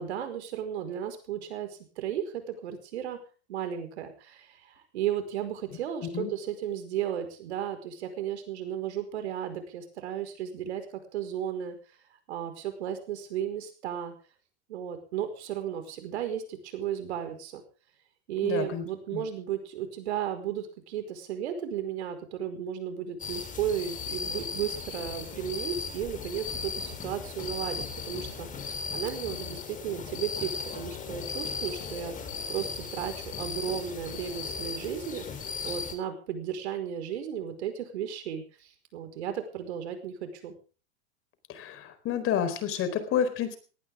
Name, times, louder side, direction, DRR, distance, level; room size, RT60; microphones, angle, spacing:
voice 1, 0.0-3.2 3.5-10.9 11.1-11.8 12.3-14.1 14.7-17.6 18.3-32.1 32.5-35.3 35.6-40.5, right 9 dB, 80° right, 8 dB, 5.1 m, -34 dB
voice 2, 18.4-18.8 19.1-19.2 41.5-43.6, left 8 dB, 40° left, 11 dB, 4.3 m, -29 dB
sound 1, 23.2-35.9, left 5 dB, 25° left, 3.7 m, -37 dB
19.0 x 18.0 x 3.7 m, 0.37 s
hypercardioid pair, 115°, 33 cm